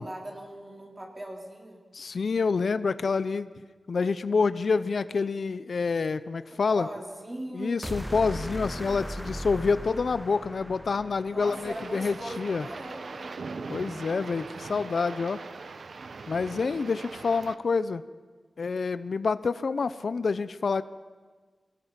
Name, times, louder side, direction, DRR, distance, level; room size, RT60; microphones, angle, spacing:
voice 1, 0.0-1.8 6.5-7.8 11.2-13.3, right 1 dB, 25° right, -1 dB, 3.9 m, -39 dB
voice 2, 1.9-3.5 3.9-6.9 7.5-12.7 13.7-15.4 16.3-18.0 18.6-20.8, left 4 dB, 65° left, 14 dB, 0.6 m, -27 dB
sound 1, 7.8-12.1, equal, 5° right, 0.5 m, -38 dB
sound 2, 11.4-17.6, right 4 dB, 70° right, 0.9 m, -41 dB
25.5 x 18.0 x 5.9 m, 1.4 s
wide cardioid pair, 110°, 0 cm